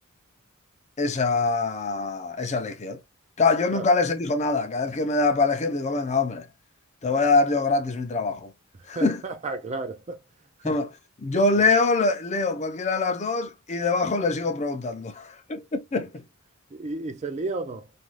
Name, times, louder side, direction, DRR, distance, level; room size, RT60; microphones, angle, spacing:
voice 1, 1.0-3.0 3.4-6.5 7.0-8.5 8.9-9.2 10.6-10.9 11.2-16.2, left 3 dB, 35° left, 0.5 m, -24 dB
voice 2, 8.9-10.2 10.6-10.8 11.6-11.7 16.7-17.9, right 3 dB, 35° right, 0.4 m, -33 dB
2.5 x 2.3 x 3.1 m
head